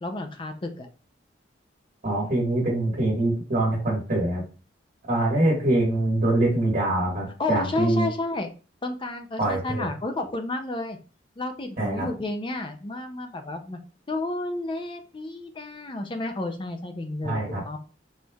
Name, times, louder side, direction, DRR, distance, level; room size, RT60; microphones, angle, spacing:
voice 1, 0.0-0.9 7.4-8.5 8.8-11.0 11.4-13.8 14.1-17.8, left 2 dB, 30° left, 6 dB, 0.5 m, -31 dB
voice 2, 2.0-4.4 5.1-8.1 9.4-9.9 11.8-12.1 17.2-17.6, right 1 dB, 45° right, -5 dB, 1.6 m, -24 dB
4.3 x 3.2 x 2.3 m, 0.36 s
head